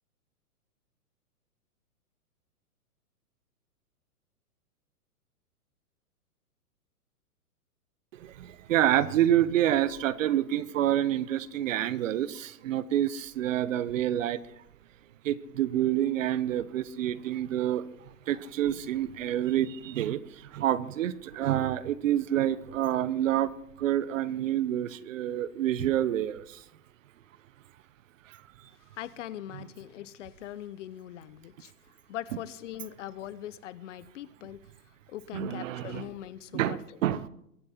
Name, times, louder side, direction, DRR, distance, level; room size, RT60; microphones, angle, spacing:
voice 1, 8.2-14.4 15.2-17.8 18.3-20.2 20.5-23.5 23.8-26.4 35.3-36.0 36.5-37.3, right 12 dB, 55° right, 17 dB, 1.0 m, -27 dB
voice 2, 28.9-31.7 32.1-34.6 35.1-37.0, left 12 dB, 50° left, 17 dB, 0.9 m, -41 dB
23.0 x 9.7 x 4.3 m, 0.75 s
hypercardioid pair, 130°, 46 cm